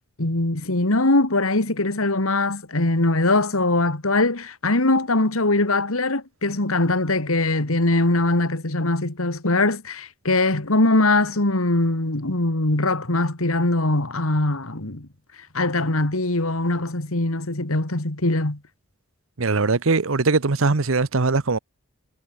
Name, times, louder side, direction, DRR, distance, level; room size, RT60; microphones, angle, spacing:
voice 1, 0.2-15.1 15.5-18.6, left 2 dB, 85° left, 2.6 m, -21 dB
voice 2, 19.4-21.6, right 3 dB, 75° right, 0.9 m, -21 dB
head